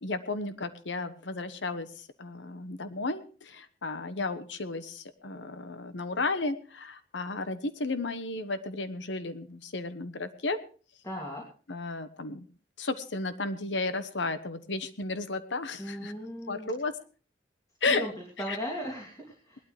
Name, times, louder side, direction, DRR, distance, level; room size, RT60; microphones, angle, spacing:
voice 1, 0.0-10.6 11.7-12.5 12.8-16.1 16.5-16.9 17.8-18.0 18.5-18.6, left 3 dB, 85° left, 11 dB, 1.2 m, -33 dB
voice 2, 11.0-11.4 15.8-16.7 17.8-19.6, equal, 20° left, -2 dB, 2.9 m, -37 dB
20.0 x 12.5 x 3.3 m, 0.38 s
head